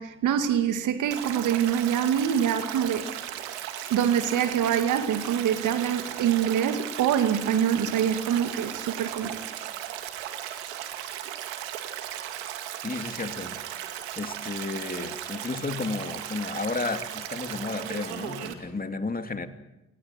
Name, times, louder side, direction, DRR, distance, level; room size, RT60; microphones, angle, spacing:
voice 1, 0.0-3.1 3.9-9.4, right 9 dB, 65° right, 2.3 m, -25 dB
Stream, 1.1-18.5, right 11 dB, 80° right, 2.1 m, -36 dB
voice 2, 12.8-13.6 14.2-19.5, left 3 dB, 25° left, 2.7 m, -32 dB
28.0 x 24.0 x 4.6 m
hypercardioid pair, 45°, 32 cm